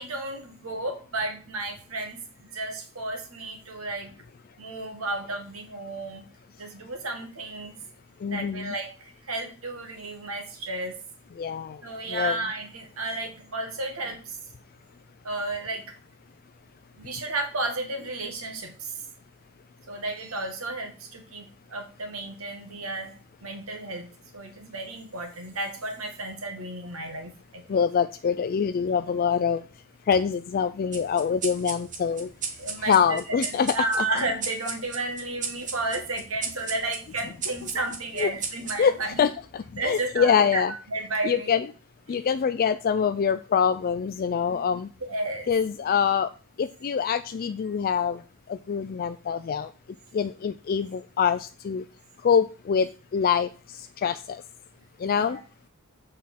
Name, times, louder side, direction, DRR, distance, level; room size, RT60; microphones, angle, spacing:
voice 1, 0.0-4.1 4.6-6.2 6.6-7.8 8.3-10.9 11.8-14.4 15.2-15.9 17.0-19.0 19.9-23.2 23.4-24.1 24.3-27.6 32.6-33.2 33.7-39.2 39.8-41.6 42.1-42.2 44.5-45.5 55.0-55.4, right 2 dB, 70° right, 5 dB, 1.8 m, -33 dB
voice 2, 8.2-8.8 11.4-11.8 12.1-12.4 27.7-29.6 30.1-32.3 32.8-34.1 38.2-38.3 38.8-40.7 41.2-41.7 42.1-44.9 45.5-46.3 46.6-48.2 48.5-49.7 50.1-51.8 52.2-53.5 54.0-54.4 55.0-55.4, left 7 dB, 45° left, 11 dB, 0.3 m, -25 dB
sound 1, 30.9-39.8, right 5 dB, 35° right, 1.4 m, -37 dB
7.3 x 4.4 x 5.7 m, 0.36 s
head